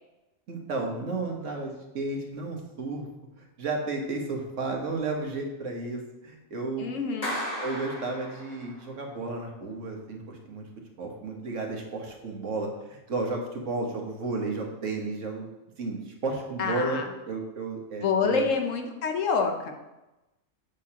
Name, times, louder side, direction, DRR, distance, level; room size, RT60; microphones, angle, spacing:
voice 1, 0.5-3.1 3.4-6.9 7.6-10.7 11.0-15.5 15.8-17.0 17.3-18.4, right 3 dB, 65° right, 1 dB, 1.5 m, -33 dB
voice 2, 6.8-7.4 16.6-17.1 18.0-19.7, left 5 dB, 70° left, 4 dB, 1.2 m, -27 dB
Clapping, 7.2-8.9, equal, 30° left, 1.3 m, -35 dB
7.8 x 6.7 x 2.9 m, 1.0 s
omnidirectional pair, 1.4 m